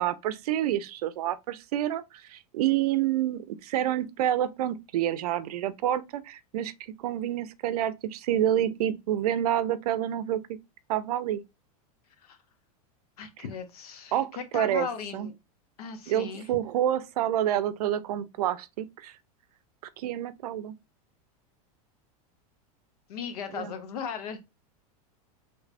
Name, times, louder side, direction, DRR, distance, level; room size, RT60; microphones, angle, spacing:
voice 1, 0.0-10.6 10.9-11.4 14.1-14.9 15.1-15.3 16.1-19.1 20.0-20.7 23.5-23.7, right 11 dB, 80° right, 0.5 m, -28 dB
voice 2, 13.2-15.3 15.8-16.5 23.1-24.4, left 7 dB, 80° left, 0.9 m, -37 dB
3.3 x 3.2 x 2.5 m
supercardioid pair, 170°, 19 cm